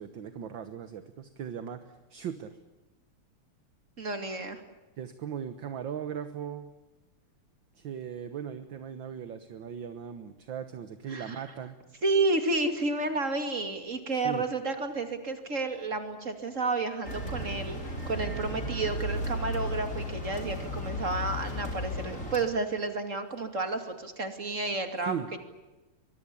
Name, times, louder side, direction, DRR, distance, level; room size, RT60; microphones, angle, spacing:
voice 1, 0.0-2.6 5.0-6.7 7.8-11.8 14.1-14.4 25.1-25.3, right 8 dB, 60° right, 10 dB, 1.8 m, -38 dB
voice 2, 4.0-4.6 11.1-11.4 12.0-25.1, right 3 dB, 35° right, 7 dB, 2.9 m, -31 dB
sound 1, 17.0-22.4, left 1 dB, 35° left, 4.7 m, -34 dB
24.0 x 22.5 x 8.5 m, 1.1 s
omnidirectional pair, 2.4 m